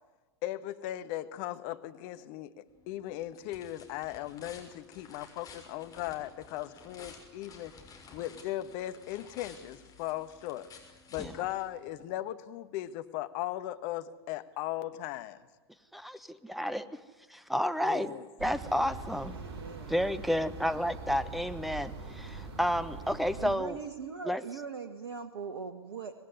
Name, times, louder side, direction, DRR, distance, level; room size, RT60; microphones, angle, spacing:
voice 1, 0.4-7.7 8.1-10.7 11.1-15.4 17.8-18.2, left 14 dB, 45° left, 10 dB, 1.5 m, -38 dB
sound 1, 2.7-12.1, left 4 dB, 25° left, 6.2 m, -53 dB
voice 2, 15.9-17.0 17.3-18.1 18.4-19.4 19.9-23.8 24.2-24.4, equal, ahead, 15 dB, 1.2 m, -31 dB
sound 2, 18.4-23.6, right 3 dB, 50° right, 6.2 m, -43 dB
voice 3, 19.3-20.2 23.4-26.1, right 5 dB, 70° right, 9 dB, 1.5 m, -41 dB
25.0 x 19.5 x 9.7 m, 1.3 s
figure-of-eight pair, 95°, 14 cm